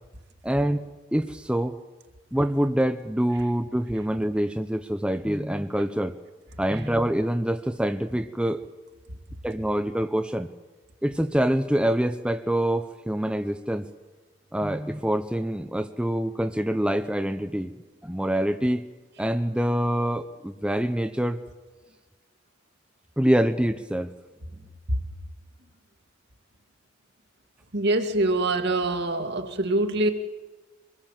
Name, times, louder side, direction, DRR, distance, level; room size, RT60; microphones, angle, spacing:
voice 1, 0.4-0.8 1.1-1.8 2.3-6.2 6.6-8.6 9.4-10.5 11.0-13.9 14.5-17.7 18.0-18.8 19.2-21.4 23.2-24.1, right 1 dB, 5° right, 0.7 m, -25 dB
voice 2, 27.7-30.1, right 2 dB, 60° right, 2.1 m, -24 dB
24.5 x 20.5 x 7.4 m
head